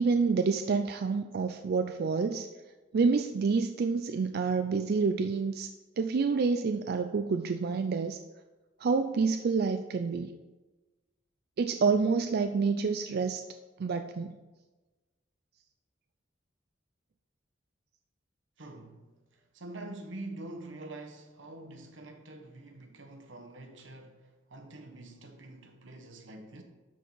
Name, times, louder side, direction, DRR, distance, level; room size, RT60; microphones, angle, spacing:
voice 1, 0.0-2.5 2.9-5.7 6.0-8.2 8.8-10.3 11.6-13.4 13.8-14.4, right 4 dB, 55° right, 0.4 m, -28 dB
voice 2, 18.6-19.0 19.3-26.6, right 2 dB, 90° right, 1.2 m, -45 dB
12.0 x 4.5 x 4.6 m
head